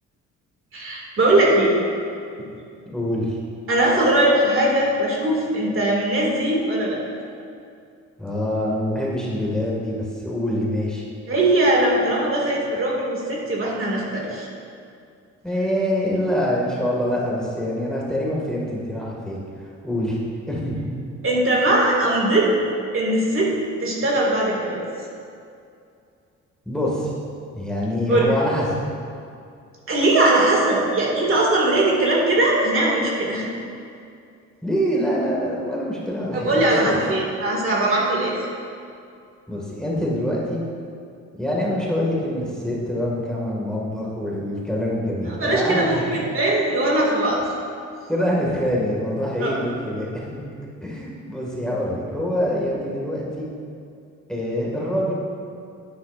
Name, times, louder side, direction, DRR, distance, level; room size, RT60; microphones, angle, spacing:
voice 1, 0.7-1.7 3.7-7.0 11.3-14.5 21.2-22.6 22.9-23.5 23.8-24.8 28.1-28.3 29.9-33.5 36.3-38.4 45.3-47.4 49.4-49.5, right 1 dB, 45° right, -3 dB, 2.2 m, -20 dB
voice 2, 2.9-3.4 8.2-11.0 15.4-19.4 19.8-20.2 20.5-20.8 26.7-27.1 27.5-28.8 34.6-37.0 39.5-40.6 41.4-46.1 48.1-50.4 50.8-53.5 54.3-55.1, equal, ahead, -5 dB, 2.0 m, -25 dB
11.0 x 9.5 x 2.5 m, 2.4 s
cardioid pair, 90°, 30 cm